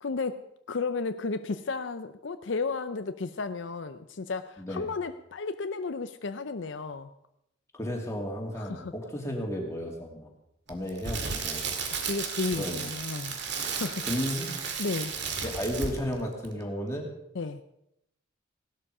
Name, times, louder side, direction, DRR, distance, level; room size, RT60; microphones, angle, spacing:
voice 1, 0.0-7.1 8.5-8.9 12.0-14.1 14.8-15.1 17.3-17.6, left 4 dB, 65° left, 10 dB, 0.6 m, -33 dB
voice 2, 7.7-10.3 10.7-11.6 12.6-12.9 13.6-13.8 14.1-14.5 15.4-17.1, equal, 15° left, 0 dB, 2.6 m, -33 dB
Crackle, 10.7-16.2 16.4-16.6, right 5 dB, 60° right, 2.0 m, -34 dB
17.5 x 12.5 x 4.9 m, 0.81 s
head